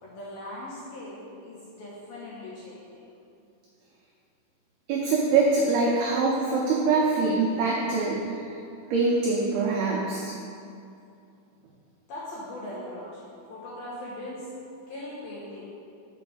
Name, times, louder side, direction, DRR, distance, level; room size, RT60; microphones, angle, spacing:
voice 1, 0.0-3.0 12.1-14.4 14.9-15.6, left 1 dB, 70° left, -7 dB, 2.3 m, -40 dB
voice 2, 4.9-8.4 8.9-10.3, right 3 dB, 90° right, -4 dB, 2.1 m, -24 dB
7.0 x 5.7 x 7.0 m, 2.5 s
omnidirectional pair, 5.7 m